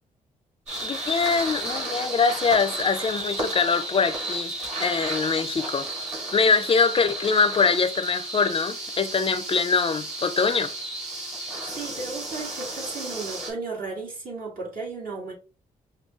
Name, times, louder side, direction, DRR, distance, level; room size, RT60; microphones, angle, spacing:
sound 1, 0.7-13.5, right 2 dB, 45° right, 2.1 m, -33 dB
voice 1, 0.8-4.5 4.8-5.9 6.3-10.7, left 5 dB, 35° left, 0.4 m, -23 dB
voice 2, 11.6-15.3, right 3 dB, 65° right, 2.0 m, -35 dB
5.2 x 2.3 x 2.4 m
supercardioid pair, 45°, 16 cm